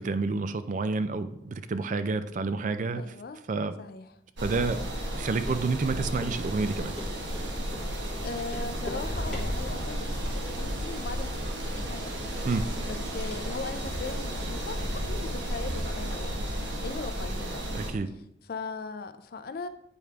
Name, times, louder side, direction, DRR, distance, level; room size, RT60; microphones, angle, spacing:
voice 1, 0.0-3.1 3.5-3.7 4.4-7.0 12.4-12.7 17.7-18.1, right 4 dB, 40° right, 11 dB, 0.3 m, -29 dB
voice 2, 2.9-3.4 3.8-4.1 8.2-12.1 12.8-16.4 16.8-17.7 18.5-19.7, left 4 dB, 50° left, 10 dB, 0.4 m, -39 dB
sound 1, 4.4-17.9, equal, 65° right, 1.3 m, -33 dB
Run, 4.5-4.6 5.0-5.1 5.5-5.6 5.9-7.5 7.7-7.9 8.1-8.2 8.5-9.0 9.3-9.8 10.2-10.6 10.9-11.0 11.4-11.5 11.8-12.3 12.5-13.0 13.3-14.5 14.8-14.9 15.2-15.3, left 1 dB, ahead, 1.6 m, -42 dB
9.2 x 3.4 x 4.6 m, 0.83 s
head